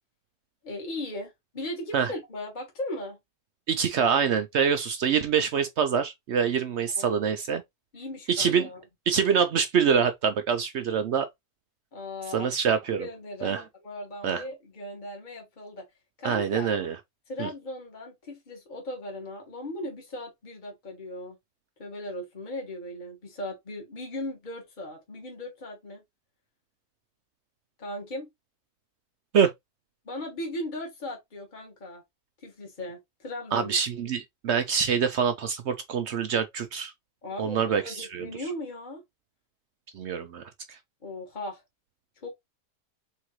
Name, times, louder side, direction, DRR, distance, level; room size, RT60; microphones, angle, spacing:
voice 1, 0.6-3.2 7.0-7.1 7.9-8.8 11.9-12.5 13.0-15.8 16.2-16.7 17.3-21.4 21.8-26.0 27.8-28.3 30.0-32.0 32.4-33.7 37.2-39.0 41.0-41.6 42.2-42.3, left 1 dB, 30° left, 1.5 m, -38 dB
voice 2, 3.7-7.6 8.3-8.7 9.1-11.3 12.3-13.1 13.4-13.6 14.2-14.4 16.2-17.0 17.4-17.5 29.3-29.5 33.5-36.9 37.4-38.3 39.9-40.8, right 7 dB, 65° right, 0.7 m, -25 dB
3.9 x 3.6 x 3.0 m
omnidirectional pair, 1.6 m